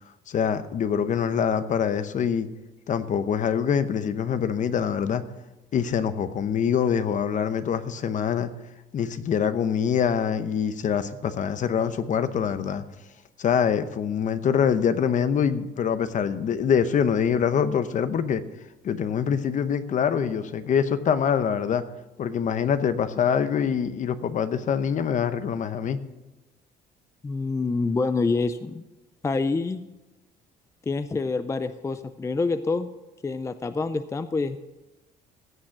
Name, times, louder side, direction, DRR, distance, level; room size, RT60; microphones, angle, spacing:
voice 1, 0.3-2.5 2.9-5.2 5.7-8.5 8.9-12.8 13.4-18.4 18.8-21.8 22.2-26.0, left 7 dB, 50° left, 12 dB, 0.9 m, -24 dB
voice 2, 27.2-28.8 29.2-29.8 30.9-32.9 33.2-34.6, left 3 dB, 15° left, 11 dB, 0.5 m, -26 dB
16.0 x 6.4 x 5.9 m, 1.1 s
cardioid pair, 110°, 17 cm